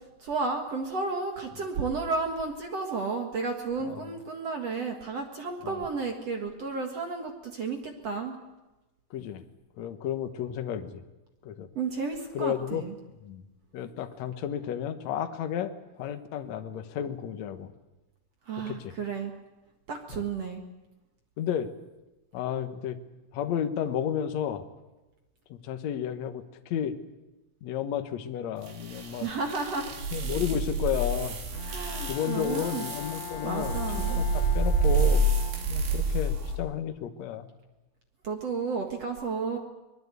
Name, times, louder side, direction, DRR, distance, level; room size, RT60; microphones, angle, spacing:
voice 1, 0.2-8.4 11.8-13.0 18.5-19.3 19.9-20.6 29.2-29.9 31.6-32.9 33.4-34.2 38.2-39.6, right 4 dB, 50° right, 3 dB, 2.1 m, -32 dB
voice 2, 9.1-9.4 9.8-11.0 11.4-11.7 12.3-13.4 13.7-15.7 16.0-17.7 18.7-18.9 20.1-20.2 21.4-21.7 22.3-23.0 23.3-24.6 25.5-26.9 27.6-29.3 30.1-31.4 32.1-33.8 34.1-35.3 35.7-37.5, left 9 dB, 65° left, 7 dB, 1.8 m, -32 dB
sound 1, 28.7-36.6, right 2 dB, 80° right, 5.4 m, -28 dB
Bowed string instrument, 31.5-36.1, left 11 dB, 80° left, 3.3 m, -41 dB
24.0 x 20.5 x 8.3 m, 1.1 s
omnidirectional pair, 4.9 m